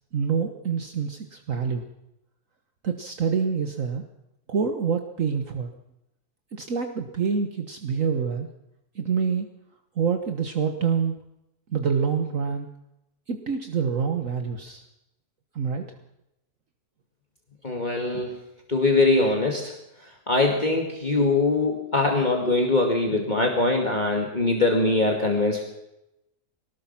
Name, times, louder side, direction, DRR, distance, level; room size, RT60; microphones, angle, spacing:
voice 1, 0.1-1.8 2.8-4.0 4.5-5.7 6.5-8.5 8.9-9.5 10.0-11.2 11.7-12.7 13.3-14.8 15.5-15.8, right 6 dB, 60° right, 5 dB, 1.7 m, -26 dB
voice 2, 17.6-18.4 18.7-19.7 20.0-25.6, left 2 dB, 30° left, 0 dB, 2.4 m, -22 dB
23.5 x 19.0 x 5.9 m, 0.88 s
omnidirectional pair, 1.6 m